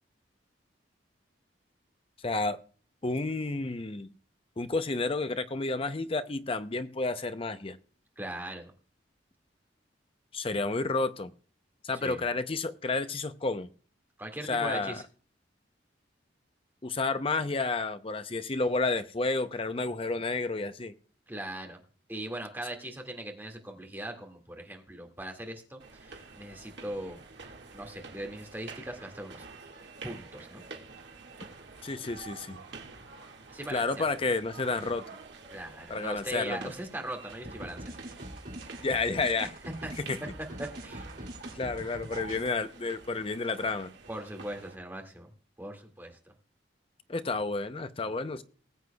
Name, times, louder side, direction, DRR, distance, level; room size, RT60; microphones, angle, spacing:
voice 1, 2.2-2.6 3.0-4.1 4.6-7.8 10.3-11.3 11.8-13.7 14.5-15.0 16.8-20.9 31.8-32.6 33.7-35.0 35.9-36.6 38.8-39.5 40.0-40.2 41.5-43.9 47.1-48.4, left 3 dB, 30° left, 11 dB, 0.6 m, -30 dB
voice 2, 8.2-8.7 11.9-12.3 14.2-15.0 21.3-21.8 22.1-27.2 27.7-29.5 30.0-30.6 33.5-34.1 35.5-38.0 39.8-39.9 40.6-41.1 44.1-45.3 45.6-46.2, right 1 dB, 10° right, 2 dB, 2.0 m, -40 dB
sound 1, 25.8-44.7, right 4 dB, 70° right, 1.9 m, -48 dB
sound 2, 37.4-42.5, right 1 dB, 50° right, 2.6 m, -43 dB
20.0 x 8.0 x 2.3 m, 0.41 s
head